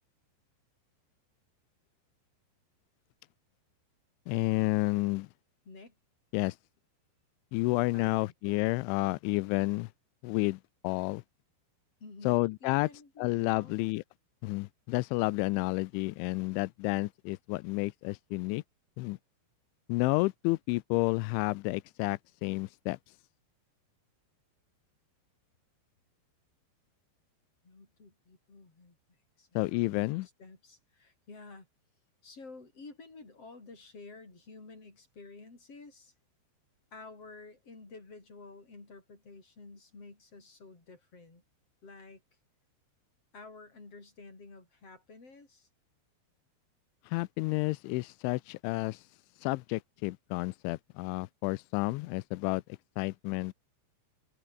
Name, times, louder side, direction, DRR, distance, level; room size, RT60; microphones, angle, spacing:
voice 1, 4.3-5.3 6.3-6.6 7.5-9.9 10.2-11.2 12.2-12.9 13.2-14.0 14.4-18.6 19.0-19.2 19.9-23.0 29.6-30.3 47.1-49.0 49.4-52.6 53.0-53.5, left 22 dB, 90° left, 3.0 m, -30 dB
voice 2, 5.7-6.0 7.9-8.3 12.0-13.8 27.6-29.0 29.4-29.6 29.9-31.7 32.2-36.1 36.9-41.4 41.8-42.2 43.3-45.7, left 3 dB, 30° left, 7.7 m, -51 dB
omnidirectional pair, 5.3 m